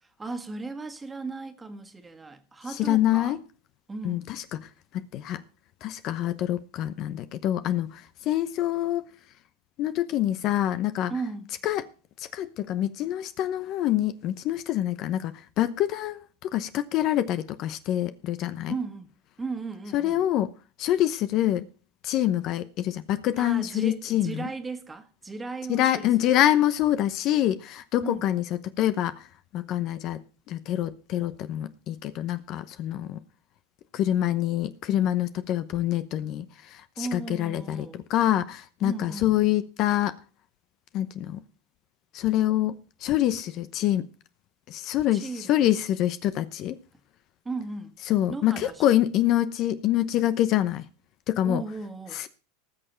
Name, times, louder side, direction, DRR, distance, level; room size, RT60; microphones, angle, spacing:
voice 1, 0.0-3.4 3.9-4.3 11.1-11.5 18.7-19.1 19.4-20.2 23.4-26.4 28.0-28.2 37.0-38.0 38.8-39.3 45.1-45.7 47.4-48.0 48.3-49.0 51.4-52.2, right 3 dB, 15° right, 1.7 m, -36 dB
voice 2, 2.8-3.4 4.0-4.6 4.9-5.4 5.8-9.0 9.8-11.1 11.6-11.8 12.3-18.7 19.9-20.5 20.8-21.7 22.0-24.5 25.7-29.3 29.5-33.2 33.9-40.2 40.9-41.4 42.1-42.7 43.0-44.1 44.7-46.8 48.1-50.8 51.3-51.6 52.1-52.3, left 12 dB, 50° left, 0.8 m, -26 dB
19.0 x 6.6 x 4.4 m
supercardioid pair, 110°, 0 cm